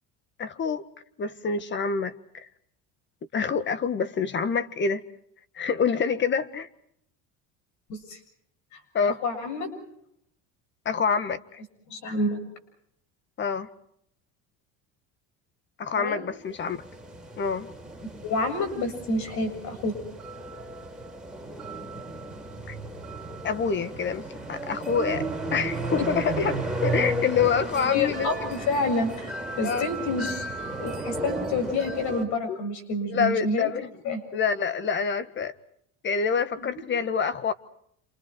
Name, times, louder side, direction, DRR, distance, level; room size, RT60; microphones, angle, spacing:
voice 1, 0.4-0.8 1.2-2.5 3.3-5.0 5.6-6.7 8.9-9.2 10.9-11.6 13.4-13.7 15.8-16.8 17.4-17.7 22.7-22.8 23.4-25.3 25.5-26.5 26.8-28.3 29.6-29.9 32.5-32.6 33.1-33.9 34.3-35.5 36.0-37.5, left 6 dB, 35° left, 13 dB, 1.7 m, -26 dB
voice 2, 9.2-9.7 11.9-12.4 15.9-16.2 18.2-19.9 26.0-26.1 27.9-29.3 29.6-30.5 30.8-33.7 34.0-34.2 36.6-36.7, left 2 dB, 60° left, 8 dB, 7.3 m, -28 dB
jet bike chimes, 16.5-32.2, right 1 dB, ahead, 4.3 m, -34 dB
29.5 x 27.5 x 4.6 m, 0.70 s
cardioid pair, 115°, 32 cm